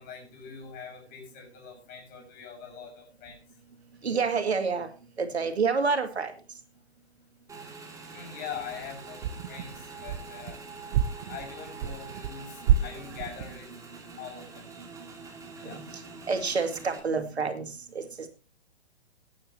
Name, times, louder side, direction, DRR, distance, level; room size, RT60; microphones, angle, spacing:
voice 1, 0.0-3.4 8.1-10.6 11.3-13.7 14.2-14.6 15.6-15.8, left 7 dB, 25° left, 1 dB, 6.1 m, -43 dB
voice 2, 4.0-4.9 5.2-6.3 13.3-13.8 14.4-14.5 14.8-14.9 15.6-15.8 16.3-18.0, right 5 dB, 75° right, 7 dB, 2.3 m, -29 dB
Motorcycle / Engine, 7.5-17.0, right 4 dB, 10° right, 2.3 m, -45 dB
sound 1, 8.5-8.9 9.2-10.6 10.9-12.3 12.7-13.6, right 9 dB, 35° right, 0.7 m, -29 dB
16.5 x 10.5 x 2.8 m, 0.32 s
figure-of-eight pair, 120°, 32 cm